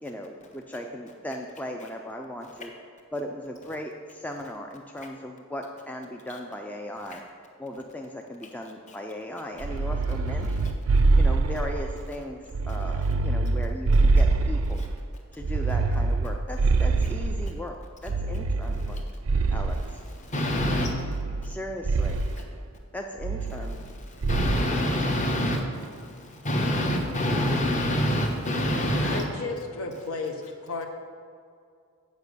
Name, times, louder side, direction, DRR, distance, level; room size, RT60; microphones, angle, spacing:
voice 1, 0.0-2.7 3.1-7.2 7.6-10.8 11.2-14.8 15.3-17.7 18.0-19.0 19.5-20.0 21.4-22.2 22.9-23.9, left 1 dB, 5° left, 2 dB, 0.3 m, -37 dB
sound 1, 9.6-12.0 12.5-15.0 15.4-17.6 18.1-19.9 20.6-21.5 21.8-22.3 23.2-23.9 24.2-24.7, right 3 dB, 70° right, 0.5 m, -24 dB
voice 2, 20.3-20.9 24.3-29.2, equal, 35° left, 2 dB, 1.0 m, -26 dB
voice 3, 29.0-30.9, left 3 dB, 70° left, 4 dB, 1.0 m, -33 dB
8.3 x 5.3 x 6.7 m, 2.3 s
head